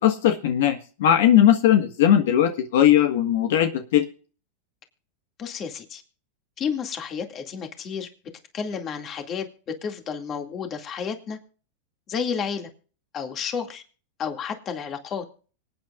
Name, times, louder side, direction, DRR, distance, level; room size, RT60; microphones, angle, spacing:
voice 1, 0.0-4.0, left 10 dB, 70° left, 1.5 m, -19 dB
voice 2, 5.4-6.0 6.6-8.1 8.5-11.4 12.1-12.7 13.1-13.8 14.2-15.2, left 6 dB, 30° left, 2.3 m, -31 dB
25.5 x 9.1 x 2.5 m
supercardioid pair, 135°, 0 cm